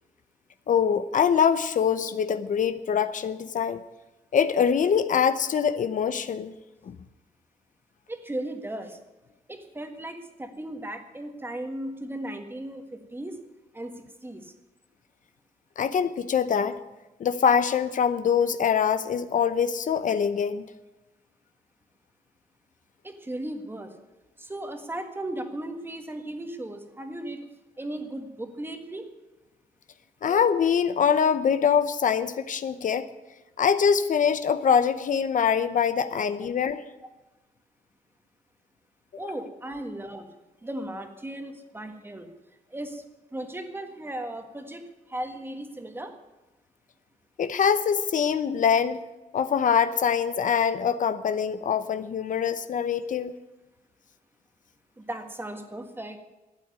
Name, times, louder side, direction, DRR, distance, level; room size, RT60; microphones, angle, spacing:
voice 1, 0.7-3.8 4.3-6.5 6.8-7.0 15.8-16.8 17.2-20.6 30.2-33.1 33.6-36.8 39.2-39.3 47.4-49.0 49.3-53.3, left 7 dB, 65° left, 12 dB, 0.7 m, -24 dB
voice 2, 8.1-9.0 9.5-13.4 13.7-13.9 14.2-14.5 23.0-23.9 24.4-27.4 27.8-29.0 39.2-40.3 40.6-42.3 42.7-43.0 43.3-44.8 45.1-46.1 55.0-56.2, right 1 dB, 15° right, 6 dB, 1.6 m, -36 dB
13.0 x 8.8 x 9.5 m, 1.1 s
wide cardioid pair, 130°, 15 cm